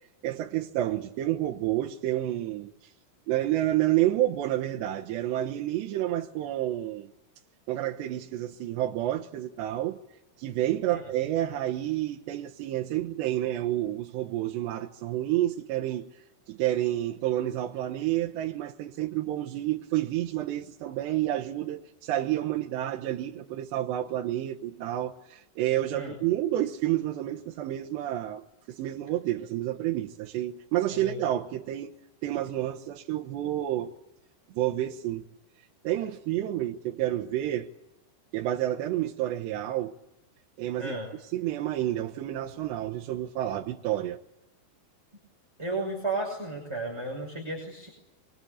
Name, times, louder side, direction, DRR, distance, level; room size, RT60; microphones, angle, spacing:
voice 1, 0.2-2.7 3.3-7.1 7.7-10.0 10.4-16.1 16.5-28.4 28.7-31.9 32.2-33.9 34.5-35.2 35.8-37.7 38.3-39.9 40.6-41.0 41.3-44.2, right 13 dB, 85° right, 3.4 m, -29 dB
voice 2, 40.8-41.1 45.6-47.9, right 2 dB, 5° right, 5.6 m, -33 dB
25.0 x 23.0 x 8.6 m
omnidirectional pair, 4.9 m